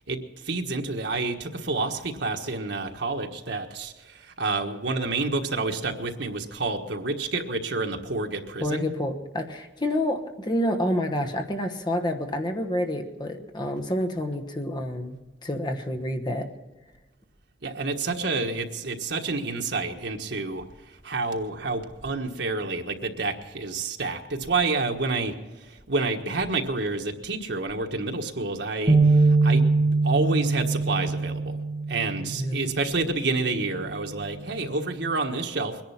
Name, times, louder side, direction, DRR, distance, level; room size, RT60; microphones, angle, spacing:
voice 1, 0.1-8.9 17.6-29.7 30.0-31.6 31.9-35.8, right 3 dB, 80° right, 3 dB, 1.4 m, -29 dB
voice 2, 8.6-16.5 32.3-32.7, left 1 dB, 25° left, 4 dB, 1.1 m, -28 dB
sound 1, 28.9-33.1 33.6-33.8 34.7-35.1, right 3 dB, 30° right, 1.2 m, -23 dB
22.0 x 10.5 x 5.8 m, 1.2 s
head